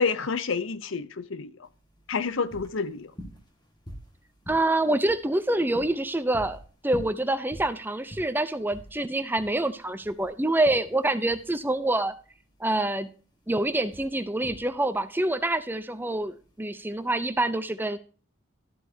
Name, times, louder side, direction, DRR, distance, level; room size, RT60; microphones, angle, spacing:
voice 1, 0.0-1.5 2.1-3.1, left 5 dB, 70° left, 0.6 m, -28 dB
sound 1, 1.6-17.3, equal, 20° left, 1.9 m, -47 dB
voice 2, 4.5-12.1 12.6-13.1 13.5-18.0, right 1 dB, 10° right, 0.6 m, -26 dB
13.0 x 8.1 x 2.7 m
head